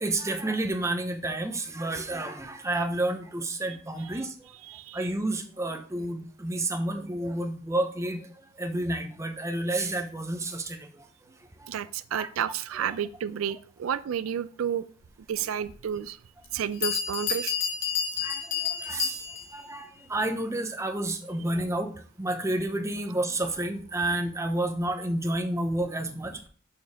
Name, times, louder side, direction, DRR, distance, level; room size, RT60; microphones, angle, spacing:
voice 1, 0.0-4.5 4.9-11.7 12.1-12.3 16.5-16.6 18.2-19.3 19.5-26.5, right 1 dB, 15° right, 5 dB, 0.8 m, -30 dB
voice 2, 4.7-5.0 11.7-14.9 15.3-16.2 16.5-17.5, right 8 dB, 90° right, 15 dB, 0.4 m, -31 dB
Bell, 15.6-15.7 16.4-16.5 16.8-19.6, left 8 dB, 60° left, 1.3 m, -30 dB
6.8 x 6.5 x 3.5 m, 0.42 s
head